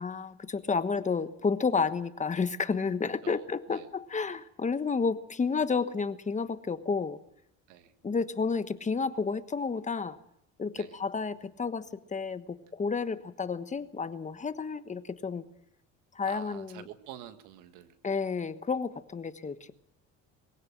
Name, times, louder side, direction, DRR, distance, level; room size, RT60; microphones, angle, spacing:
voice 1, 0.0-7.2 8.0-10.2 10.6-11.8 12.1-15.5 16.1-16.8 18.0-19.7, left 5 dB, 25° left, 11 dB, 1.2 m, -31 dB
voice 2, 3.2-3.9 7.7-7.9 10.8-11.0 16.2-17.9, right 12 dB, 90° right, 10 dB, 1.7 m, -48 dB
22.5 x 16.5 x 7.3 m, 0.77 s
cardioid pair, 110°, 29 cm